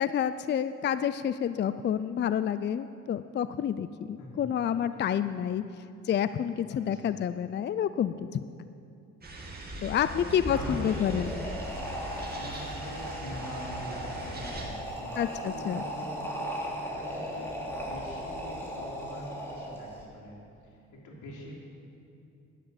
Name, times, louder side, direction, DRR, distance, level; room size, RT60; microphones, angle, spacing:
voice 1, 0.0-5.6 6.0-8.4 9.8-11.4 15.2-15.8, left 9 dB, 35° left, 13 dB, 0.4 m, -29 dB
voice 2, 6.7-7.1 9.9-11.2 12.3-20.4 20.6-21.6, left 1 dB, 85° left, -3 dB, 3.2 m, -43 dB
sound 1, 9.2-14.7, right 1 dB, 30° right, 2.5 m, -41 dB
sound 2, 10.3-20.0, equal, 5° left, 3.1 m, -37 dB
11.0 x 10.0 x 7.7 m, 2.6 s
cardioid pair, 90°, 30 cm